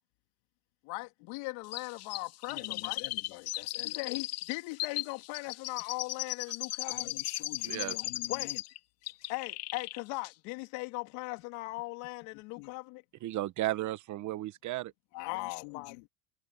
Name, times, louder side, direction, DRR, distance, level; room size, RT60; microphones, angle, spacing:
voice 1, 0.8-3.0 3.8-7.1 8.3-8.5 9.3-13.0 15.2-16.1, left 24 dB, 70° left, 2.3 m, -39 dB
Chirp tweet, 1.7-8.8 9.1-10.0 10.2-10.3, left 17 dB, 35° left, 0.4 m, -37 dB
voice 2, 2.5-4.1 6.8-8.6 12.3-12.7 15.1-16.0, left 25 dB, 90° left, 3.0 m, -46 dB
voice 3, 13.2-14.9, right 15 dB, 40° right, 0.9 m, -34 dB
cardioid pair, 155°, 48 cm